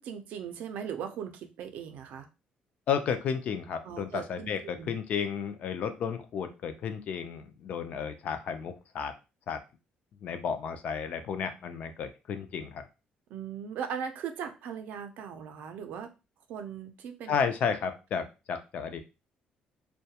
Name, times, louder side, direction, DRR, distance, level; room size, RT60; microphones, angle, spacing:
voice 1, 0.0-2.3 3.8-4.9 13.3-16.1 16.5-17.3 17.7-17.8, right 7 dB, 70° right, 6 dB, 0.4 m, -39 dB
voice 2, 2.9-9.1 9.5-9.6 10.2-12.8 17.3-19.0, left 7 dB, 50° left, 9 dB, 0.4 m, -32 dB
2.2 x 2.1 x 2.8 m, 0.28 s
cardioid pair, 160°, 3 cm